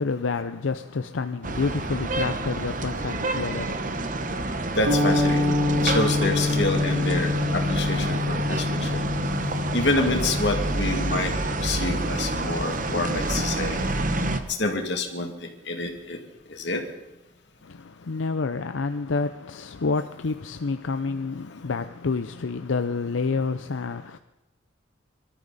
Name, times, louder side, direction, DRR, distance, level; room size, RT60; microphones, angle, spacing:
voice 1, 0.0-4.0 17.6-24.2, left 4 dB, 90° left, 0.6 m, -29 dB
sound 1, 1.4-14.4, right 2 dB, 45° right, 1.1 m, -28 dB
voice 2, 4.7-9.0 9.7-11.3 11.6-13.9 14.5-16.2 16.5-16.8, left 2 dB, 65° left, 2.4 m, -27 dB
sound 2, 4.9-13.2, left 3 dB, 85° right, 3.6 m, -27 dB
24.5 x 13.5 x 4.1 m
head